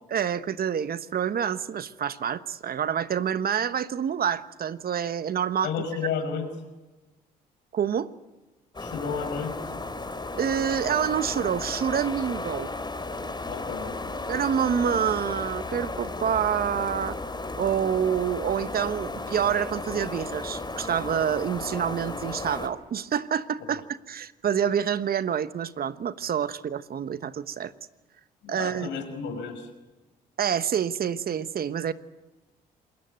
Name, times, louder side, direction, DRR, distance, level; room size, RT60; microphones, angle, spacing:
voice 1, 0.1-5.7 7.7-8.1 10.3-12.7 14.3-17.2 17.6-27.7 28.5-29.0 30.4-31.9, right 8 dB, 55° right, 13 dB, 1.2 m, -27 dB
voice 2, 5.6-6.5 8.8-9.6 13.5-14.1 28.4-29.7, left 6 dB, 75° left, 6 dB, 5.4 m, -32 dB
sound 1, 8.7-22.7, left 2 dB, 25° left, 4.2 m, -34 dB
27.5 x 21.5 x 7.8 m, 1.1 s
hypercardioid pair, 55°, 19 cm